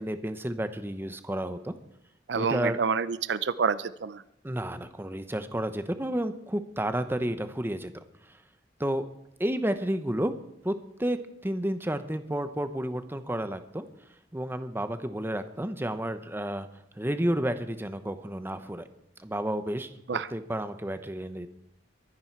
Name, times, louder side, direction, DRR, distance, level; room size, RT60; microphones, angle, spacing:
voice 1, 0.0-1.7 2.3-2.8 4.4-7.9 8.8-9.0 9.4-10.3 10.6-11.2 11.4-13.8 14.3-16.7 17.0-18.9 19.2-19.9 20.3-21.5, right 1 dB, 15° right, 10 dB, 0.9 m, -31 dB
voice 2, 2.3-4.2 20.1-20.3, right 5 dB, 75° right, 15 dB, 0.5 m, -28 dB
22.5 x 10.0 x 4.7 m, 0.78 s
head